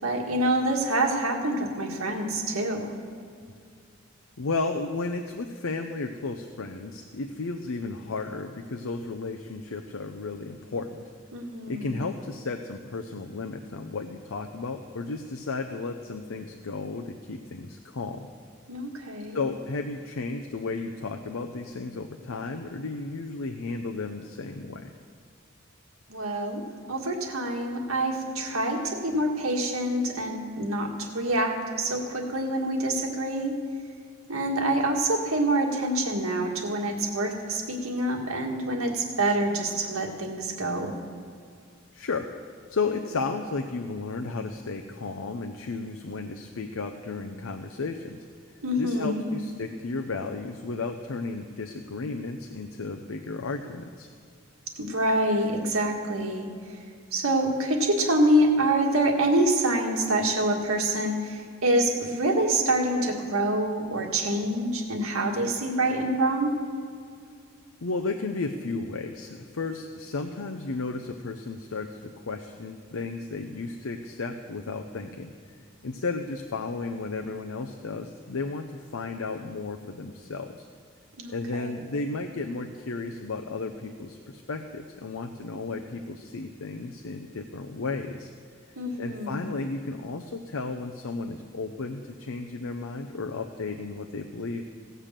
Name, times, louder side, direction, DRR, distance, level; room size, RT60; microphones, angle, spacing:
voice 1, 0.0-2.9 11.3-12.0 18.7-19.4 26.1-26.6 26.9-33.5 34.3-41.0 48.6-49.3 54.8-56.8 57.1-66.5 81.2-81.7 88.8-89.4, right 1 dB, 80° right, 1 dB, 1.9 m, -26 dB
voice 2, 4.4-11.0 11.7-18.3 19.3-24.9 41.9-42.3 42.7-48.2 48.8-54.1 67.8-75.3 75.8-80.7 81.3-88.3 89.0-94.6, left 3 dB, 75° left, 5 dB, 0.6 m, -33 dB
17.0 x 6.8 x 7.4 m, 2.2 s
head